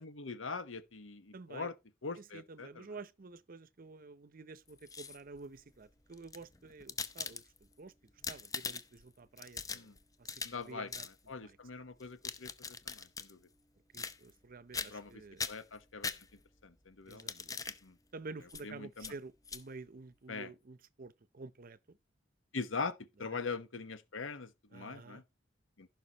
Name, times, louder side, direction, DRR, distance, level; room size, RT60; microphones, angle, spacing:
voice 1, 0.0-1.7 2.0-2.8 9.7-9.9 10.4-10.9 11.3-12.5 12.9-13.4 14.9-15.1 15.5-16.1 16.6-17.3 17.8-17.9 18.6-19.1 20.3-20.5 22.5-25.2 25.8-25.9, left 4 dB, 90° left, 1.1 m, -42 dB
voice 2, 1.3-1.7 2.2-7.9 8.3-9.9 10.2-11.1 11.4-11.8 13.9-15.5 17.1-17.6 18.1-22.0 23.3-23.4 24.7-25.2, right 3 dB, 45° right, 0.6 m, -50 dB
sound 1, 4.7-5.4 6.1-7.7 8.1-9.0 9.4-10.6 10.9-11.1 12.0-13.3 13.9-14.4 14.7-15.1 15.4-16.6 17.1-17.8 18.5-18.6 19.0-19.1 19.4-19.6, left 5 dB, 20° left, 0.7 m, -41 dB
15.5 x 6.0 x 2.9 m
head